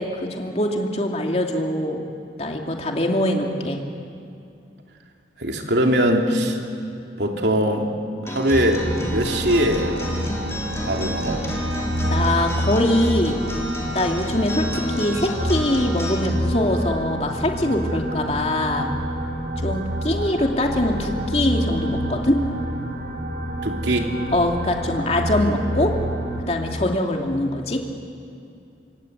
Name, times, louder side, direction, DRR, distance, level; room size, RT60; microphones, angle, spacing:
voice 1, 0.0-2.0 2.4-3.8 12.1-13.4 13.9-18.9 19.6-22.4 24.3-25.9 26.4-27.8, left 1 dB, 35° left, 1 dB, 2.6 m, -23 dB
voice 2, 5.4-6.6 7.2-7.9 8.2-10.0 10.8-11.4 23.6-24.1, equal, 80° right, 2 dB, 3.0 m, -21 dB
Acoustic guitar, 8.3-16.2, equal, 15° left, 3.9 m, -32 dB
sound 1, 8.5-26.4, equal, 65° right, 4.4 m, -28 dB
26.5 x 23.5 x 8.1 m, 2.5 s
head